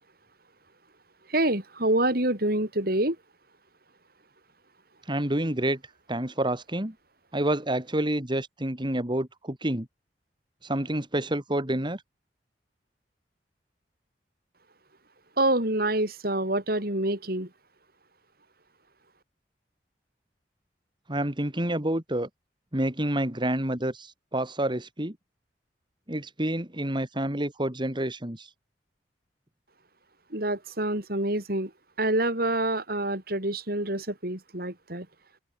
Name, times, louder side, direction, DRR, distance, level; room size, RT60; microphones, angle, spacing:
voice 1, 1.3-3.2 15.4-17.5 30.3-31.7 32.0-35.0, right 1 dB, 60° right, 6.8 m, -26 dB
voice 2, 5.1-5.8 6.1-6.9 7.3-9.9 10.6-12.0 21.1-22.3 22.7-25.2 26.1-28.5, right 1 dB, 25° right, 2.9 m, -28 dB
open air
head